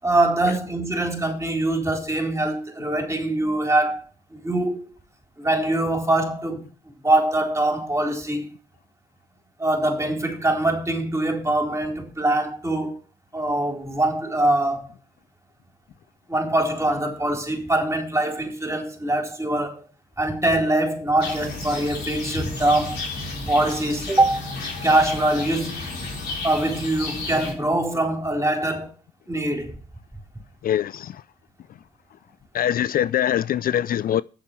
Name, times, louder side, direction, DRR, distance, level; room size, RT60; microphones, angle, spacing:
voice 1, 0.0-4.0 4.3-4.8 5.4-6.6 7.0-8.5 9.6-13.0 13.3-14.9 16.3-19.8 20.2-23.0 23.5-24.5 24.8-25.8 26.4-28.9 29.3-29.8, right 1 dB, 15° right, 3.9 m, -23 dB
sound 1, 21.2-27.5, left 3 dB, 80° left, 4.1 m, -32 dB
voice 2, 30.6-31.2 32.5-34.2, left 10 dB, 60° left, 0.4 m, -23 dB
7.5 x 6.9 x 7.0 m
supercardioid pair, 45°, 17 cm